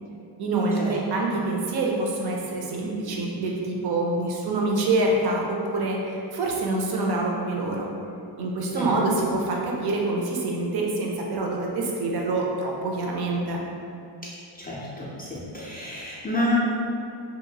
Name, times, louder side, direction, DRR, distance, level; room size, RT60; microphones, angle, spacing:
voice 1, 0.4-7.9 8.4-13.6, right 2 dB, 55° right, -1 dB, 0.6 m, -26 dB
voice 2, 14.6-16.5, equal, 20° left, -7 dB, 0.4 m, -30 dB
2.9 x 2.5 x 2.7 m, 2.6 s
cardioid pair, 120°, 47 cm